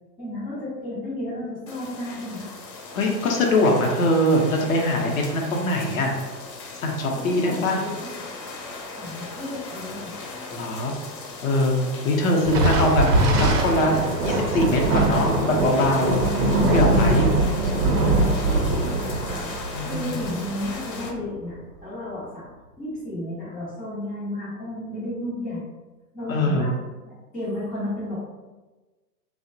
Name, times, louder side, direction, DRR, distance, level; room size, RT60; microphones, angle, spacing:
voice 1, 0.2-2.5 7.1-8.3 9.0-10.1 18.4-22.5 22.8-25.6 26.1-26.7 27.0-28.2, left 1 dB, 5° left, -14 dB, 0.4 m, -33 dB
sound 1, 1.7-21.1, left 3 dB, 85° left, 0.8 m, -37 dB
voice 2, 2.9-6.2 6.8-7.8 10.5-10.9 11.4-11.8 12.0-13.1 13.3-16.2 16.7-17.3 19.7-20.2 26.3-26.7, left 1 dB, 55° left, 1 dB, 0.6 m, -22 dB
Thunder, 12.4-21.2, right 2 dB, 65° right, 0.7 m, -22 dB
2.7 x 2.1 x 2.6 m, 1.2 s
hypercardioid pair, 135°, 50 cm